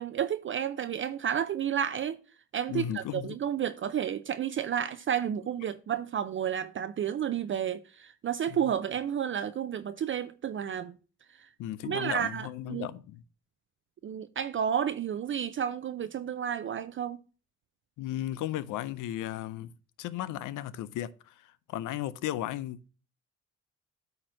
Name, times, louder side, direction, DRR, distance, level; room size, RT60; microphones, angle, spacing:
voice 1, 0.0-2.2 2.5-10.9 11.4-11.5 11.8-12.9 14.0-17.2, right 9 dB, 40° right, 0.5 m, -31 dB
voice 2, 2.7-3.4 8.5-8.6 11.6-13.2 18.0-19.7 20.0-22.9, left 13 dB, 85° left, 0.6 m, -35 dB
8.7 x 2.9 x 6.2 m
cardioid pair, 90°, 30 cm